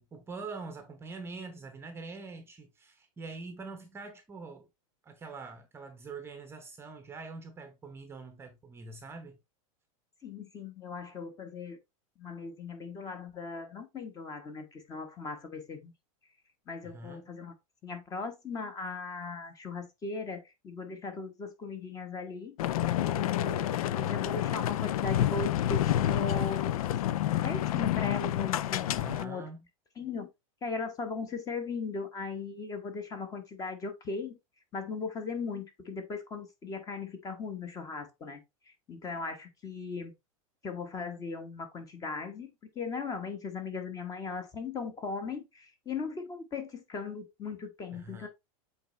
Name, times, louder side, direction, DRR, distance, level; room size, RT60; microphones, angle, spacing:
voice 1, 0.0-4.7 5.0-9.4 16.8-17.3 28.9-29.6 47.9-48.3, right 4 dB, 15° right, 0.8 m, -44 dB
voice 2, 10.2-11.8 12.2-15.9 16.7-17.5 17.8-22.6 23.0-26.7 27.4-28.9 29.2-29.5 30.0-30.3 30.6-34.4 34.7-38.4 38.9-40.1 40.6-42.5 42.7-48.3, left 4 dB, 20° left, 1.1 m, -38 dB
sound 1, 22.6-29.2, left 12 dB, 85° left, 0.5 m, -29 dB
7.8 x 4.1 x 3.1 m
supercardioid pair, 155°, 18 cm